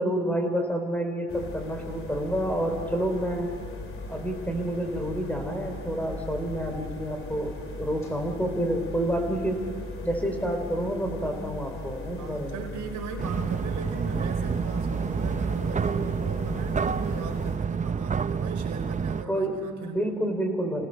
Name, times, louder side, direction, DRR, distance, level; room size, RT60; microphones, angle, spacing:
voice 1, 0.0-3.5 4.1-9.7 10.0-12.7 19.3-20.9, right 1 dB, 5° left, 4 dB, 3.6 m, -29 dB
sound 1, 1.3-17.6, left 2 dB, 45° left, 3.4 m, -39 dB
voice 2, 12.2-20.0, right 5 dB, 75° right, 3 dB, 3.8 m, -39 dB
sound 2, 13.2-19.2, right 6 dB, 25° right, 0.6 m, -28 dB
27.5 x 18.0 x 6.4 m, 2.2 s
cardioid pair, 90°, 30 cm